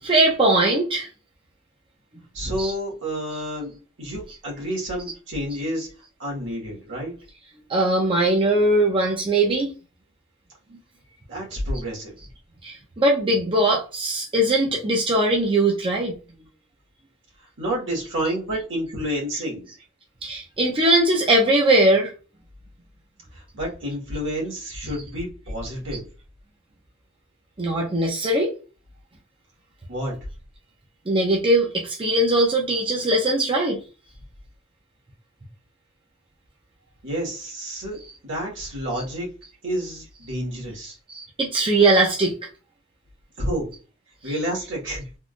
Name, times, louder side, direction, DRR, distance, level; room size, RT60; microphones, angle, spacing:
voice 1, 0.0-1.1 2.6-2.7 7.7-9.7 12.6-16.1 20.2-22.1 27.6-28.5 31.1-33.8 38.9-39.0 41.1-42.3 44.3-44.4, right 1 dB, 25° right, 0.6 m, -20 dB
voice 2, 2.3-5.9 6.2-7.2 11.3-12.1 17.6-19.7 23.3-26.0 29.9-30.3 37.0-39.3 39.6-40.9 43.4-43.7 44.2-45.0, equal, 65° right, 1.5 m, -29 dB
3.6 x 2.4 x 2.4 m
head